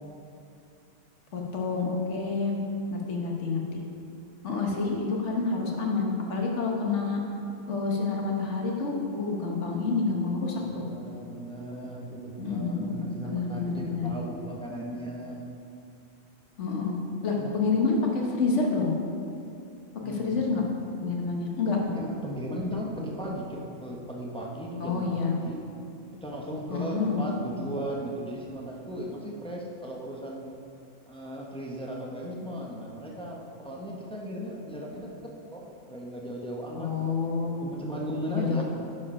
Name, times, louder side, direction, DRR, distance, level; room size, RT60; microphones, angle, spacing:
voice 1, 1.3-2.6 2.9-3.8 4.4-7.2 7.7-10.9 12.4-14.1 16.6-17.0 17.2-18.9 20.0-20.6 21.0-21.8 24.8-25.3 26.7-27.3 36.8-37.7 38.3-38.6, left 4 dB, 55° left, 0 dB, 1.4 m, -28 dB
voice 2, 10.6-15.4 17.4-17.5 19.9-20.5 21.2-21.3 21.8-25.7 26.2-30.5 31.1-37.3 37.6-38.6, equal, 5° left, -2 dB, 0.7 m, -37 dB
10.0 x 4.8 x 5.5 m, 2.6 s
omnidirectional pair, 1.5 m